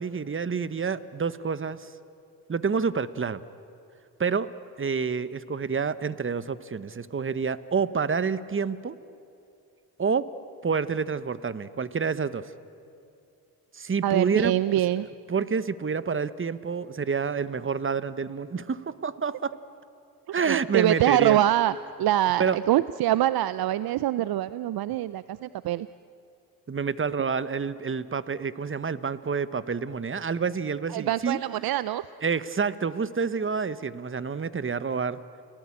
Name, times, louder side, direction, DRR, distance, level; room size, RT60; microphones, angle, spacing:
voice 1, 0.0-1.9 2.5-3.4 4.2-4.5 4.8-8.9 10.0-10.3 10.6-12.5 13.7-14.5 15.3-19.5 20.3-21.4 22.4-22.6 26.7-31.4 32.2-35.2, right 5 dB, 35° right, 15 dB, 1.1 m, -28 dB
voice 2, 14.0-15.1 20.5-25.9 30.9-32.0, right 13 dB, 70° right, 16 dB, 0.6 m, -24 dB
30.0 x 19.0 x 8.7 m, 2.6 s
supercardioid pair, 60°, 38 cm